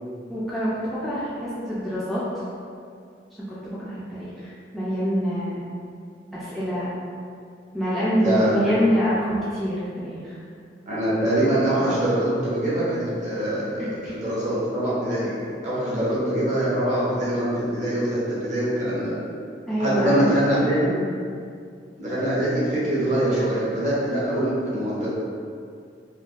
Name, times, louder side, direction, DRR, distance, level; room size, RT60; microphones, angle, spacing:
voice 1, 0.3-2.2 3.6-5.6 6.3-6.9 7.7-9.8 10.0-10.4 14.0-14.1 15.9-16.0 19.7-20.3, equal, ahead, -11 dB, 0.3 m, -25 dB
voice 2, 8.2-8.7 10.9-19.1 19.8-21.0 22.0-25.1, right 1 dB, 40° right, -8 dB, 0.8 m, -24 dB
3.2 x 2.3 x 2.4 m, 2.3 s
head